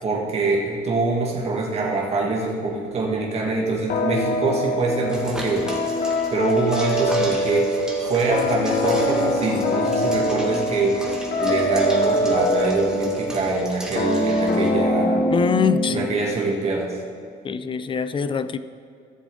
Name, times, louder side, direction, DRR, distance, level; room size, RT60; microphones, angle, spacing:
voice 1, 0.0-5.7 6.3-7.8 8.1-11.0 11.4-15.3 15.9-16.9, right 3 dB, 40° right, -2 dB, 1.6 m, -24 dB
sound 1, 3.9-16.3, left 1 dB, 60° left, 1.6 m, -23 dB
sound 2, 5.1-14.7, right 1 dB, 5° right, 1.7 m, -37 dB
voice 2, 15.3-16.1 17.4-18.6, left 6 dB, 30° left, 13 dB, 0.4 m, -23 dB
14.0 x 7.3 x 3.7 m, 2.3 s
cardioid pair, 110°, 17 cm